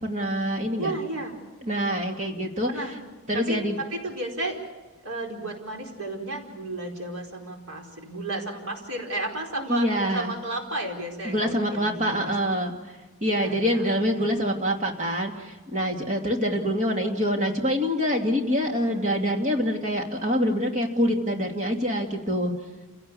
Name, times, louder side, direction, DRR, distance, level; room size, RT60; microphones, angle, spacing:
voice 1, 0.0-0.9 1.6-2.7 3.3-3.8 9.7-10.4 11.2-22.5, equal, 35° right, 2 dB, 2.6 m, -25 dB
voice 2, 0.7-1.4 2.7-3.0 3.3-4.6 5.0-9.9 10.1-12.5 13.3-14.3 18.7-19.1, right 2 dB, 75° right, 1 dB, 4.6 m, -33 dB
28.0 x 17.0 x 7.1 m, 1.2 s
head